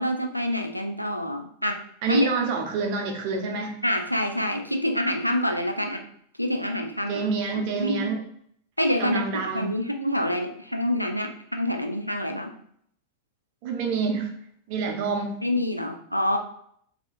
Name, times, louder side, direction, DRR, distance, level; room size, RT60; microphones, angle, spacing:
voice 1, 0.0-1.8 2.1-2.3 3.8-6.0 6.4-7.3 7.7-8.2 8.8-9.2 9.5-12.5 15.4-16.4, left 1 dB, 90° left, 3 dB, 0.4 m, -26 dB
voice 2, 2.0-3.8 7.1-8.2 9.0-9.7 13.6-14.3 14.7-15.4, right 5 dB, 45° right, 3 dB, 0.7 m, -27 dB
3.8 x 2.8 x 2.5 m, 0.66 s
figure-of-eight pair, 90°, 0 cm